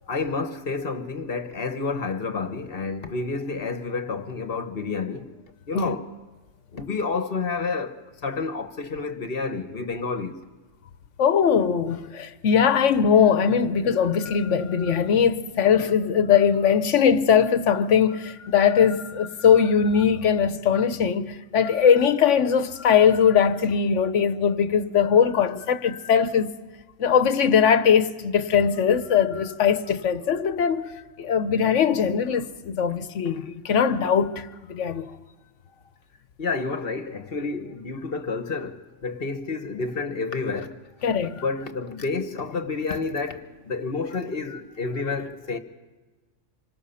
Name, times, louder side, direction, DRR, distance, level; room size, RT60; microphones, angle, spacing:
voice 1, 0.1-5.3 5.7-6.1 6.7-10.4 36.4-40.8 41.4-45.6, left 4 dB, 50° left, 1.3 m, -29 dB
voice 2, 11.2-26.5 27.0-30.9 31.2-35.1 41.0-41.4, left 7 dB, 70° left, 1.2 m, -20 dB
26.0 x 19.5 x 5.7 m
omnidirectional pair, 1.3 m